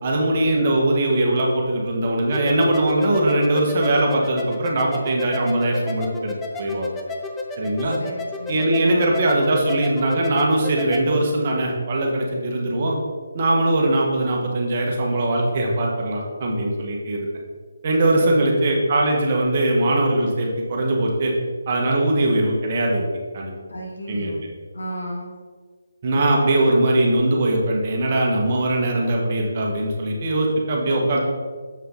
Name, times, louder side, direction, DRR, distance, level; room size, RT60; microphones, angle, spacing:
voice 1, 0.0-7.0 7.6-7.9 8.5-13.0 13.3-17.3 17.8-21.3 21.7-23.0 23.3-23.5 24.1-24.3 26.0-31.2, right 1 dB, 40° right, -1 dB, 1.5 m, -21 dB
sound 1, 2.3-11.0, left 3 dB, 10° left, 0.5 m, -32 dB
voice 2, 8.0-9.1 18.2-18.5 23.7-24.4 24.7-25.3, equal, 70° left, -2 dB, 2.1 m, -33 dB
7.1 x 5.4 x 3.9 m, 1.5 s
figure-of-eight pair, 150°, 0 cm